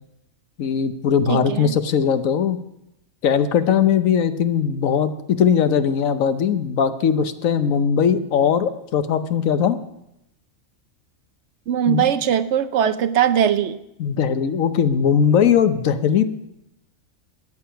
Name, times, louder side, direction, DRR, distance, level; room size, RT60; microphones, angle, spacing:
voice 1, 0.6-2.6 3.2-9.8 11.9-12.0 14.0-16.2, left 7 dB, 80° left, 11 dB, 1.2 m, -19 dB
voice 2, 1.3-1.8 11.7-13.8, right 9 dB, 65° right, 12 dB, 0.8 m, -20 dB
13.5 x 9.6 x 5.7 m, 0.84 s
omnidirectional pair, 1.4 m